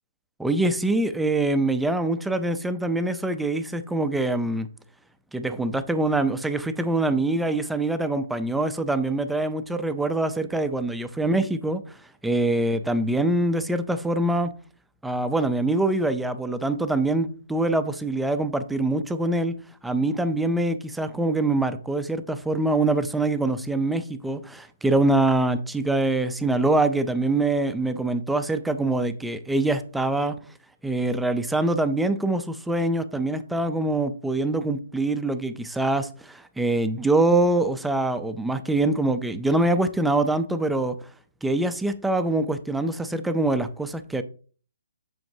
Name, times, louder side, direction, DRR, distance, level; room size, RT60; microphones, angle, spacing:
voice 1, 0.4-4.7 5.3-11.8 12.2-14.5 15.0-19.6 19.8-30.4 30.8-41.0 41.4-44.2, right 2 dB, ahead, 0.3 m, -24 dB
7.7 x 6.4 x 2.6 m
hypercardioid pair, 170°, 0 cm